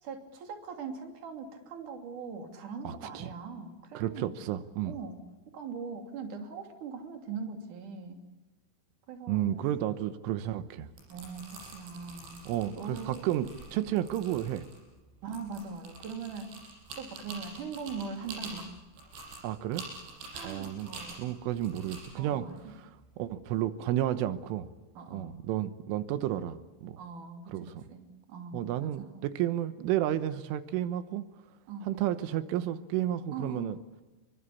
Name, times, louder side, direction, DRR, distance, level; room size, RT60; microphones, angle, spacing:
voice 1, 0.0-4.4 4.8-5.2 5.5-8.2 9.1-9.5 11.1-13.3 15.2-16.6 17.0-18.8 20.3-21.3 22.2-22.8 25.0-25.4 27.0-29.3 31.7-32.0 33.3-33.8, right 5 dB, 45° right, 5 dB, 4.0 m, -41 dB
voice 2, 2.9-3.3 4.0-4.9 9.3-10.9 12.5-14.7 19.4-19.8 20.4-22.5 22.8-22.9 23.2-24.7 25.1-27.0 27.5-27.8 28.5-31.2 31.9-33.8, right 12 dB, 90° right, 11 dB, 3.6 m, -32 dB
sound 1, 10.8-23.6, right 3 dB, 70° right, 8.7 m, -47 dB
28.5 x 24.0 x 8.6 m, 1.2 s
omnidirectional pair, 5.5 m